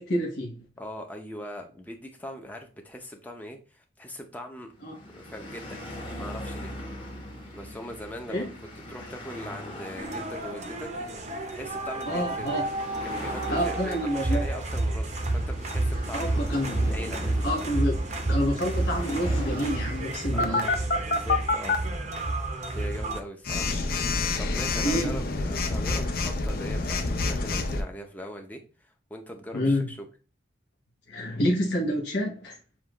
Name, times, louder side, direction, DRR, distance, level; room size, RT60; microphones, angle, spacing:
voice 1, 0.0-0.6 4.8-4.9 8.3-8.4 12.1-12.6 13.5-14.4 16.1-16.8 17.4-17.9 18.3-20.7 24.8-25.2 29.5-29.8 31.1-32.6, equal, 70° left, 1.0 m, -28 dB
voice 2, 0.8-4.7 5.1-6.7 7.5-8.5 8.7-10.9 11.2-12.6 13.0-16.4 16.8-17.6 20.3-20.7 21.1-21.8 22.7-23.8 24.4-30.0, equal, 10° left, 0.6 m, -41 dB
sound 1, 4.7-21.5, equal, 25° left, 1.1 m, -41 dB
sound 2, 10.0-23.2, right 2 dB, 35° right, 0.6 m, -30 dB
Telephone, 20.4-21.7 23.4-27.8, left 3 dB, 50° left, 0.5 m, -27 dB
7.1 x 2.4 x 2.9 m
head